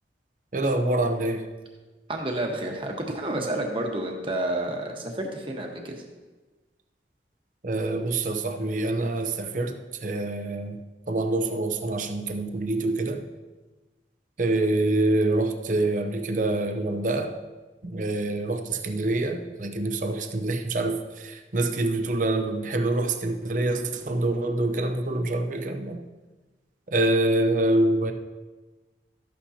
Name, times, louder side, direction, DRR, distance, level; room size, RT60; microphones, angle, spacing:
voice 1, 0.5-1.5 7.6-10.8 11.1-13.3 14.4-17.3 17.8-26.0 26.9-28.1, right 2 dB, 45° right, 6 dB, 0.7 m, -26 dB
voice 2, 2.1-6.0, right 1 dB, 30° right, 1 dB, 1.2 m, -30 dB
13.0 x 8.4 x 2.8 m, 1.2 s
head